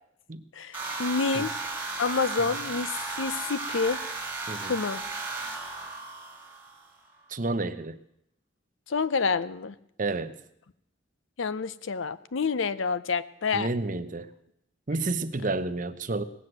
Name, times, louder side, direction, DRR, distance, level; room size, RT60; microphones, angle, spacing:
voice 1, 0.5-1.6 2.0-4.0 4.7-5.0 8.9-9.7 11.4-13.7, left 5 dB, 70° left, 15 dB, 0.6 m, -28 dB
sound 1, 0.7-6.9, right 3 dB, 10° right, 2.0 m, -35 dB
voice 2, 7.3-8.0 10.0-10.4 13.5-14.3 14.9-16.2, right 3 dB, 40° right, 11 dB, 0.7 m, -30 dB
18.5 x 7.8 x 7.8 m, 0.78 s
head